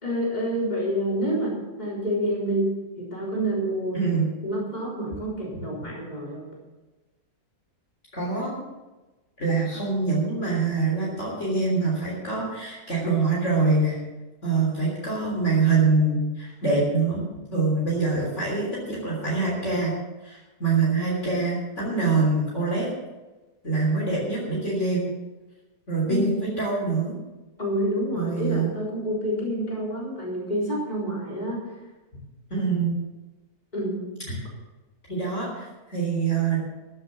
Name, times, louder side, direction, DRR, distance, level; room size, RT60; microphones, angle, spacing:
voice 1, 0.0-2.7 3.0-4.0 4.4-6.5 26.1-26.4 27.6-31.6 33.7-34.0, equal, 25° left, -5 dB, 4.2 m, -28 dB
voice 2, 3.9-4.3 8.1-8.5 9.4-14.0 14.4-17.2 17.5-19.9 20.2-22.9 23.6-25.1 25.9-27.2 28.1-28.7 32.5-32.9 34.3-34.4 35.1-36.6, right 3 dB, 45° left, -4 dB, 3.8 m, -24 dB
14.0 x 7.9 x 7.3 m, 1.2 s
omnidirectional pair, 1.7 m